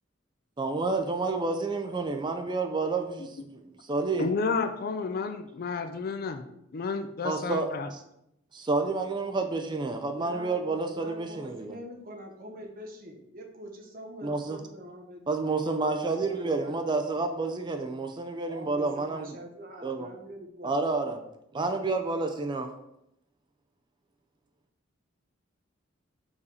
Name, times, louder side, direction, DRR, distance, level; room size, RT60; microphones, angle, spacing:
voice 1, 0.6-4.3 7.2-8.0 8.5-11.8 14.2-14.6 15.3-19.4 19.8-20.1 20.6-21.2 21.5-22.7, right 3 dB, 25° right, 6 dB, 0.4 m, -30 dB
voice 2, 4.2-6.4 6.7-7.9, left 4 dB, 50° left, 8 dB, 0.4 m, -31 dB
voice 3, 10.1-15.4 16.0-16.9 18.5-20.9, equal, 45° right, 1 dB, 1.1 m, -45 dB
4.8 x 4.2 x 4.8 m, 0.80 s
head